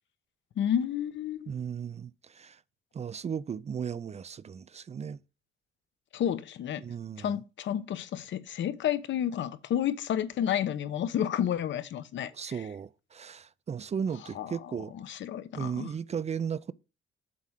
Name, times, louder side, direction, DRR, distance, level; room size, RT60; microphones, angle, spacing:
voice 1, 0.6-1.5 6.1-6.8 7.2-12.6 14.3-14.5 14.9-15.9, left 10 dB, 70° left, 0.9 m, -31 dB
voice 2, 1.5-2.6 2.9-5.2 6.8-7.4 12.3-14.9 15.5-16.7, right 7 dB, 35° right, 0.4 m, -36 dB
7.6 x 4.8 x 5.7 m
cardioid pair, 90°, 20 cm